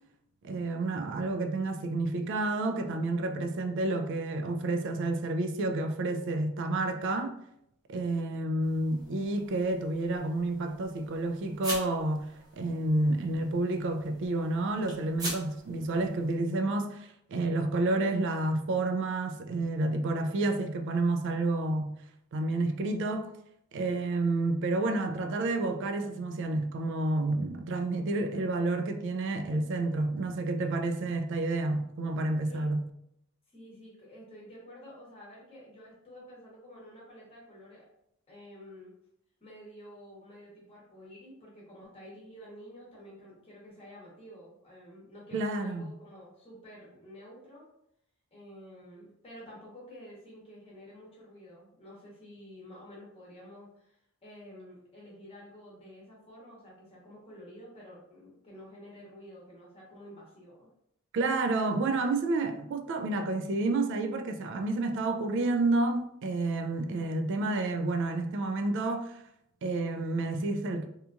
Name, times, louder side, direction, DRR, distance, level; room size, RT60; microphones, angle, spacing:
voice 1, 0.4-7.3 7.9-21.9 22.3-23.3 23.7-32.8 45.3-45.9 61.1-69.2 69.6-70.9, right 2 dB, 60° right, 0.3 m, -30 dB
sound 1, 8.6-16.4, right 1 dB, 20° right, 0.8 m, -44 dB
voice 2, 33.5-37.8 38.3-38.9 39.4-47.7 48.3-53.9 54.2-60.7, equal, 25° left, 0.8 m, -50 dB
2.8 x 2.3 x 2.4 m
head